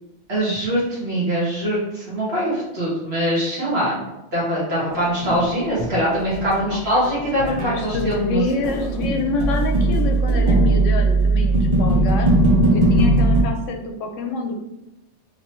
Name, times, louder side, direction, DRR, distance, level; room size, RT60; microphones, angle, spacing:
voice 1, 0.3-4.0 4.3-8.4, equal, 55° right, -7 dB, 1.9 m, -23 dB
sound 1, 4.9-6.7 7.0-13.4, right 2 dB, 40° right, 0.6 m, -19 dB
voice 2, 7.4-12.3 12.7-14.6, left 3 dB, 90° left, 3 dB, 1.0 m, -27 dB
4.0 x 3.0 x 3.0 m, 0.93 s
omnidirectional pair, 1.2 m